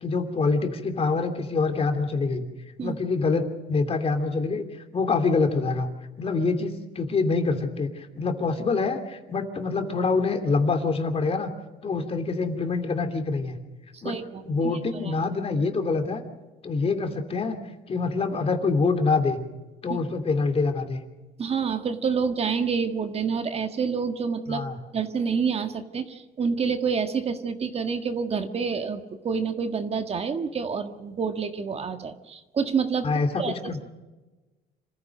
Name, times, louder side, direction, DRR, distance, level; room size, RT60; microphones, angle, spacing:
voice 1, 0.0-2.4 2.8-4.6 4.9-5.9 6.2-11.5 11.8-13.6 14.0-14.2 14.5-16.2 16.6-17.6 17.9-19.4 19.8-21.0 24.5-24.8 33.0-33.8, left 4 dB, 35° left, 6 dB, 2.9 m, -25 dB
voice 2, 13.9-14.7 15.0-15.1 21.4-24.6 24.9-33.1 33.4-33.7, right 6 dB, 35° right, 7 dB, 1.6 m, -28 dB
26.5 x 15.0 x 6.5 m, 1.2 s
cardioid pair, 110°, 17 cm